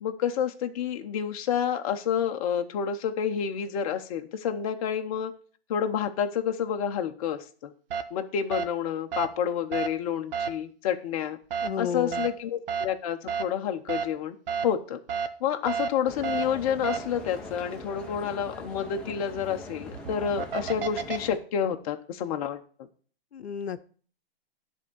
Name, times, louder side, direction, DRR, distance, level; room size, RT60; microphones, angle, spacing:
voice 1, 0.0-5.3 5.7-7.7 8.1-11.4 11.8-14.4 14.6-15.0 15.4-22.6, left 8 dB, 35° left, 6 dB, 0.8 m, -29 dB
sound 1, 7.9-8.0 8.5-8.6 9.1-9.3 9.7-9.9 10.3-10.5 11.5-11.7 12.1-12.3 12.7-12.9 13.3-13.4 13.9-14.0 14.5-14.6 15.1-15.3 15.7-15.9 16.2-16.4 16.8-17.0 19.8-21.2, right 7 dB, 60° right, 1.0 m, -29 dB
voice 2, 11.6-12.3 23.3-23.8, left 7 dB, 85° left, 12 dB, 0.7 m, -32 dB
sound 2, 16.1-21.4, left 1 dB, 5° left, 0.7 m, -42 dB
10.5 x 3.6 x 6.9 m, 0.43 s
hypercardioid pair, 140°, 31 cm